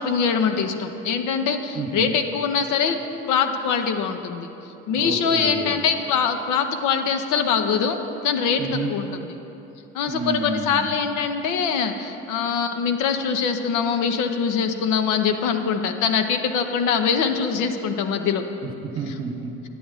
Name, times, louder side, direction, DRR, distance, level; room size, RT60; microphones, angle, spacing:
voice 1, 0.0-3.0 3.3-4.5 4.9-9.1 9.9-18.4, left 6 dB, 60° left, 6 dB, 0.8 m, -23 dB
voice 2, 1.7-2.1 5.0-5.7 8.6-8.9 10.1-10.9 18.6-19.7, right 3 dB, 40° right, 3 dB, 1.1 m, -30 dB
10.0 x 7.7 x 4.0 m, 2.9 s
hypercardioid pair, 70°, 34 cm